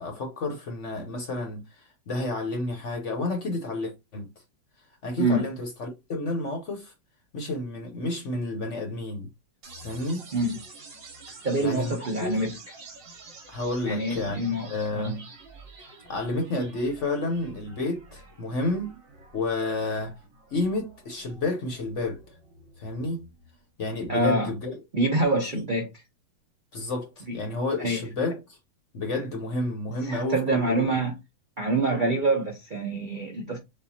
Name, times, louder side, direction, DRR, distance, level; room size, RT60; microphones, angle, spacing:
voice 1, 0.0-4.3 5.0-6.9 7.3-9.3 9.8-10.2 11.6-12.3 13.5-15.2 15.8-18.9 19.3-20.2 20.5-22.2 22.8-23.3 23.8-24.8 25.5-25.6 26.7-28.6 28.9-30.9, left 2 dB, 50° left, 1.0 m, -30 dB
sound 1, 9.6-23.6, right 3 dB, 70° right, 2.3 m, -48 dB
voice 2, 11.4-12.5 13.8-15.1 24.1-24.5 24.9-25.9 27.3-27.4 27.8-28.0 30.1-31.1 31.6-33.6, right 2 dB, 50° right, 0.6 m, -26 dB
6.8 x 2.4 x 2.8 m
omnidirectional pair, 2.0 m